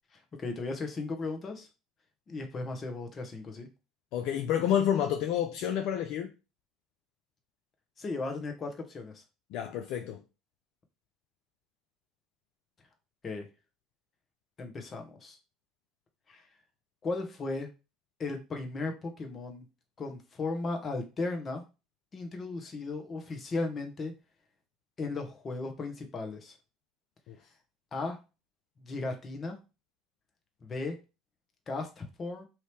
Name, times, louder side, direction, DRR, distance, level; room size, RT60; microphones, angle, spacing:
voice 1, 0.4-1.7 2.3-3.7 8.0-9.2 13.2-13.5 14.6-15.4 16.3-16.4 17.0-17.7 18.2-19.6 20.0-21.6 22.1-24.1 25.0-26.5 27.9-28.2 28.8-29.6 30.6-31.0 31.7-32.5, left 3 dB, 35° left, 1.0 m, -36 dB
voice 2, 4.1-6.3 9.5-10.2 27.3-27.4, left 9 dB, 65° left, 0.4 m, -29 dB
2.9 x 2.7 x 3.3 m
hypercardioid pair, 80°, 0 cm